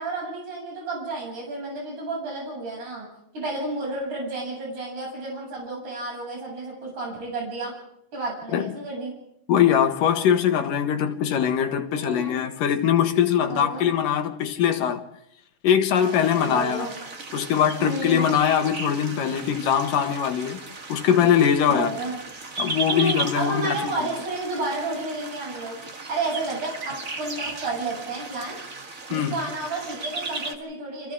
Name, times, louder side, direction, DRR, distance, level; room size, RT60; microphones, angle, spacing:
voice 1, 0.0-3.1 3.3-7.7 8.1-9.1 11.9-12.4 13.4-13.9 16.4-16.9 17.8-18.3 21.7-22.1 22.9-28.6 29.1-31.1, right 2 dB, 65° right, 9.2 m, -31 dB
voice 2, 9.5-15.0 15.6-16.9 17.3-20.6 20.9-21.9 22.6-24.1 29.1-29.3, left 9 dB, 85° left, 3.1 m, -22 dB
sound 1, 15.9-30.5, right 3 dB, 30° right, 1.8 m, -36 dB
30.0 x 27.0 x 3.7 m
omnidirectional pair, 3.8 m